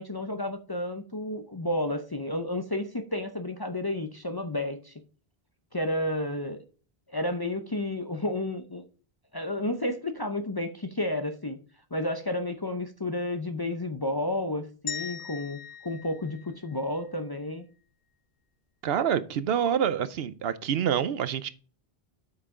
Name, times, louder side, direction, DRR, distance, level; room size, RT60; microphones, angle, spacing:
voice 1, 0.0-4.9 5.7-6.6 7.1-8.8 9.3-11.6 11.9-17.7, left 1 dB, 25° left, 0.5 m, -31 dB
sound 1, 14.9-17.1, left 7 dB, 85° left, 0.9 m, -40 dB
voice 2, 18.8-21.5, right 8 dB, 70° right, 0.8 m, -27 dB
8.2 x 5.7 x 3.7 m
omnidirectional pair, 1.1 m